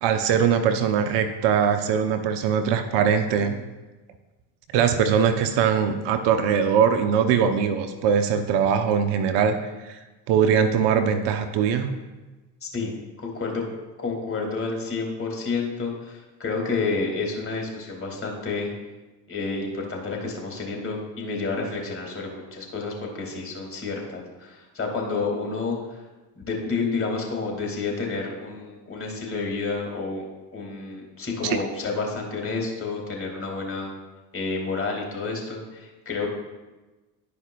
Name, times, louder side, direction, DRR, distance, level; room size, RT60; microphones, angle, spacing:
voice 1, 0.0-3.6 4.7-9.6 9.8-10.0 10.3-11.9 31.4-31.6, right 7 dB, 60° right, 8 dB, 0.8 m, -21 dB
voice 2, 12.6-12.9 13.2-13.6 14.0-18.7 19.3-25.8 26.5-30.2 30.5-33.9 34.3-36.3, left 4 dB, 30° left, 0 dB, 2.1 m, -30 dB
11.5 x 5.1 x 2.2 m, 1.2 s
hypercardioid pair, 70°, 46 cm